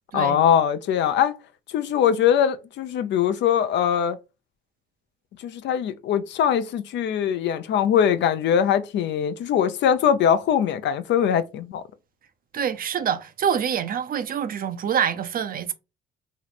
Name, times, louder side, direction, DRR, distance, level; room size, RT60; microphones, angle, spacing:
voice 1, 0.1-1.4 1.7-4.2 5.4-11.8, left 8 dB, 65° left, 0.5 m, -22 dB
voice 2, 12.5-15.7, right 8 dB, 45° right, 0.5 m, -26 dB
3.0 x 2.0 x 4.0 m
supercardioid pair, 75°, 20 cm